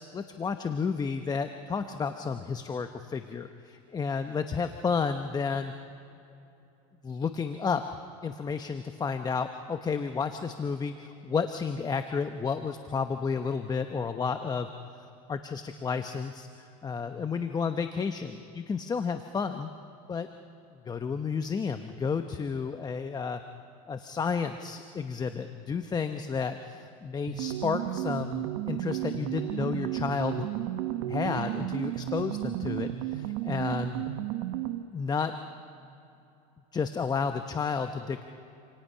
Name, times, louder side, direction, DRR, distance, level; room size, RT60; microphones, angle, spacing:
voice 1, 0.0-5.7 7.0-19.7 20.1-20.3 20.9-23.4 23.9-30.5 31.1-34.1 34.9-35.3 36.7-38.2, left 5 dB, 20° left, 8 dB, 0.9 m, -32 dB
sound 1, 27.3-34.9, right 13 dB, 70° right, 1.2 m, -33 dB
28.0 x 27.5 x 5.7 m, 2.8 s
supercardioid pair, 115°, 19 cm